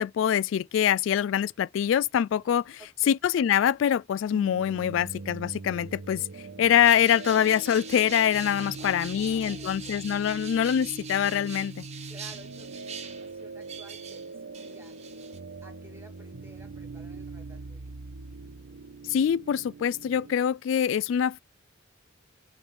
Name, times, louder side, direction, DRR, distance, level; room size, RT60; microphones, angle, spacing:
voice 1, 0.0-2.8 3.1-6.3 6.6-11.9 19.1-21.4, left 9 dB, 70° left, 0.3 m, -24 dB
voice 2, 2.8-3.1 8.8-10.0 12.1-15.0 15.6-17.9, right 1 dB, 15° right, 2.3 m, -53 dB
sound 1, 4.3-20.3, right 3 dB, 70° right, 0.7 m, -42 dB
sound 2, 6.8-14.3 14.5-15.4, right 7 dB, 35° right, 1.0 m, -43 dB
5.8 x 3.3 x 5.4 m
head